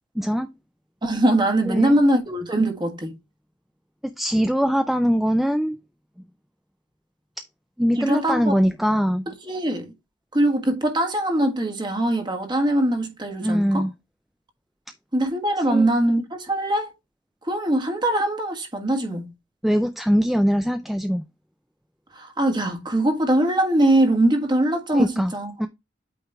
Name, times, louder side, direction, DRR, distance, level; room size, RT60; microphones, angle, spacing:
voice 1, 0.2-0.5 1.7-1.9 4.0-5.8 7.8-9.2 13.4-13.9 15.7-15.9 19.6-21.2 24.9-25.3 25.6-25.7, equal, ahead, 0.3 m, -22 dB
voice 2, 1.0-3.2 8.0-8.6 9.3-9.9 10.3-13.8 15.1-16.9 17.4-19.3 22.1-25.5, right 1 dB, 25° right, 1.4 m, -22 dB
8.8 x 3.2 x 3.5 m
head